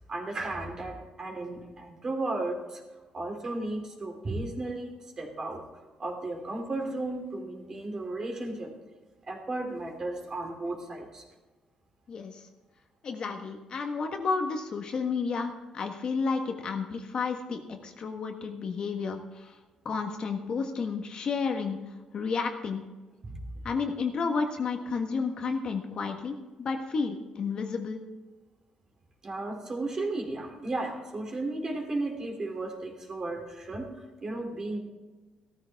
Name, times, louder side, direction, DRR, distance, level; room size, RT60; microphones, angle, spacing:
voice 1, 0.1-2.8 3.1-5.6 6.0-8.7 9.3-11.2 23.2-23.4 29.2-33.9 34.2-34.8, right 2 dB, 30° right, 2 dB, 2.9 m, -34 dB
voice 2, 12.1-12.5 13.0-19.6 19.8-21.8 22.1-22.8 23.6-28.0, left 5 dB, 45° left, 4 dB, 1.4 m, -31 dB
16.0 x 13.5 x 3.5 m, 1.2 s
cardioid pair, 145°, 2 cm